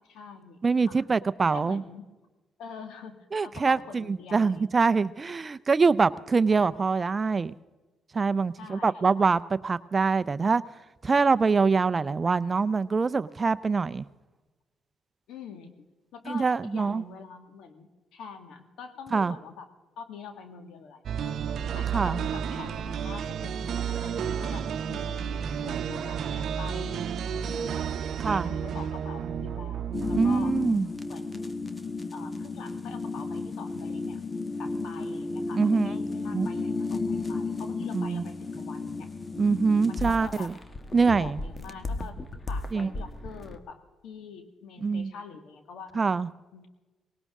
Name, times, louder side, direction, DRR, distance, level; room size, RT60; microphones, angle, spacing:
voice 1, 0.1-1.0 1.5-2.1 2.6-4.7 8.6-9.1 15.3-15.8 16.1-19.7 20.0-21.4 21.7-25.4 25.6-27.9 28.2-30.6 31.1-31.6 32.1-34.2 34.6-39.1 39.9-40.5 41.2-42.2 42.5-46.2 46.5-46.7, left 6 dB, 80° left, 7 dB, 1.9 m, -45 dB
voice 2, 0.6-1.8 3.3-7.5 8.1-10.6 11.0-14.0 16.3-17.0 19.1-19.3 21.9-22.2 24.0-24.1 28.2-28.5 30.1-30.9 35.5-35.9 36.3-36.5 37.9-38.2 39.4-40.5 40.9-41.4 42.7-42.9 44.8-45.1 46.0-46.3, right 4 dB, 30° right, 15 dB, 0.5 m, -24 dB
sound 1, 21.0-30.9, right 7 dB, 65° right, 0.8 m, -32 dB
sound 2, 29.9-43.6, left 3 dB, 25° left, 1.3 m, -33 dB
19.5 x 18.0 x 3.7 m, 1.2 s
cardioid pair, 90°, 0 cm